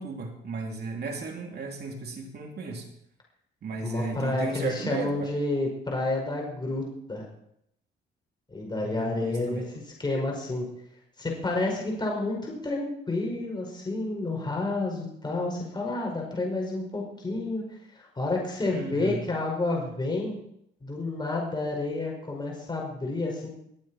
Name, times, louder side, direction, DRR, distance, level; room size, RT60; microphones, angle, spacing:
voice 1, 0.0-2.9 3.6-5.3 8.7-9.7 18.7-19.2, right 3 dB, 55° right, 2 dB, 3.1 m, -35 dB
voice 2, 3.8-7.3 8.5-9.7 10.0-10.7 11.2-17.6 17.9-20.3 20.8-23.5, left 2 dB, 20° left, -1 dB, 5.2 m, -30 dB
21.0 x 8.6 x 4.4 m, 0.73 s
cardioid pair, 90°, 20 cm